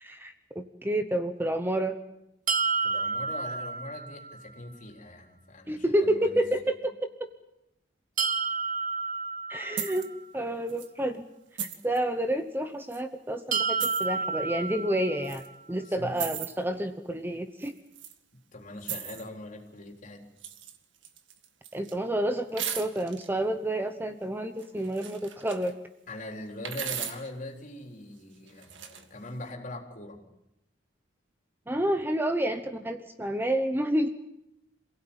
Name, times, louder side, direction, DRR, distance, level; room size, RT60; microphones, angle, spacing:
voice 1, 0.0-1.9 5.7-7.0 9.5-10.1 10.3-11.2 11.8-15.4 15.7-17.7 21.7-25.7 31.7-34.1, right 1 dB, 10° right, 7 dB, 1.0 m, -29 dB
sound 1, 2.5-4.4 8.2-10.2 13.5-15.5, right 5 dB, 45° right, 1.1 m, -30 dB
voice 2, 2.8-6.4 15.8-16.2 18.5-20.3 26.1-30.2, left 1 dB, 45° left, 2 dB, 4.1 m, -41 dB
sound 2, 9.8-10.1 10.7-10.9 11.6-12.0 12.9-13.0 13.8-14.1 15.2-15.5 16.2-16.5 17.6-18.1 18.8-19.3 20.4-20.8 21.0-21.9 22.6-23.3 24.6-25.7 26.7-27.3 28.5-29.1, right 9 dB, 75° right, 2.0 m, -37 dB
27.5 x 17.0 x 9.0 m, 0.88 s
head